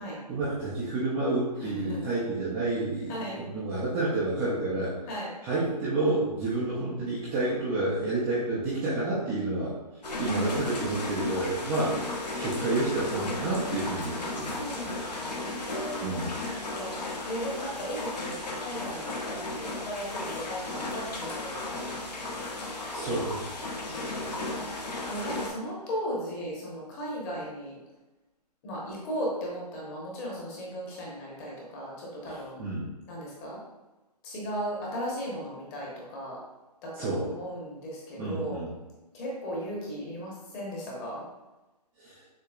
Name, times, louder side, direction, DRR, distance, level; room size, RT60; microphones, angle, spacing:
voice 1, 0.3-4.9 5.4-9.7 10.2-12.0 12.4-14.6 16.0-16.4 22.9-23.4 23.9-24.0 32.3-32.9 37.0-37.3 38.2-38.7 42.0-42.2, right 2 dB, 10° right, -9 dB, 0.4 m, -29 dB
voice 2, 1.6-2.0 3.1-3.4 5.1-5.3 10.1-11.3 14.2-16.0 16.7-17.0 17.2-22.4 23.8-24.7 25.1-27.8 28.6-32.6 33.1-33.6 34.2-36.4 36.8-38.6 39.1-41.2, equal, 20° left, -4 dB, 1.0 m, -37 dB
sound 1, 10.0-25.5, left 2 dB, 75° left, 1.1 m, -35 dB
6.7 x 2.7 x 2.4 m, 1.1 s
hypercardioid pair, 150°, 21 cm